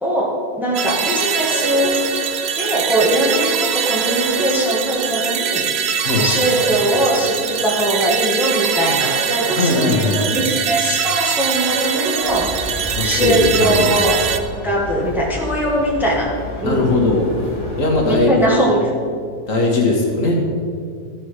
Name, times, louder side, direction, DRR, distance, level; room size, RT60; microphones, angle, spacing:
voice 1, 0.0-1.9 2.5-5.7 6.2-14.2 14.6-16.3 16.6-17.0 18.1-18.8, right 1 dB, ahead, -3 dB, 1.5 m, -21 dB
sound 1, 0.7-14.4, right 7 dB, 60° right, 0.7 m, -22 dB
voice 2, 9.6-10.2 12.9-13.9 16.6-17.3 17.8-18.7 19.5-20.4, left 2 dB, 55° left, -1 dB, 1.9 m, -18 dB
sound 2, 12.2-18.2, equal, 20° left, 2.9 m, -32 dB
14.0 x 7.1 x 4.8 m, 2.4 s
omnidirectional pair, 1.6 m